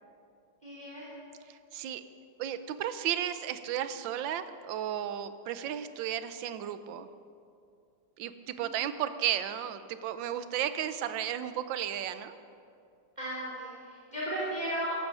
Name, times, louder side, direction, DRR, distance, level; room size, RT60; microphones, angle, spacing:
voice 1, 0.6-1.1 8.5-8.8 13.2-14.9, right 1 dB, 20° right, -8 dB, 3.1 m, -36 dB
voice 2, 1.5-2.0 2.4-7.1 8.2-12.4, right 10 dB, 85° right, 12 dB, 1.4 m, -34 dB
14.0 x 14.0 x 5.5 m, 2.5 s
omnidirectional pair, 2.0 m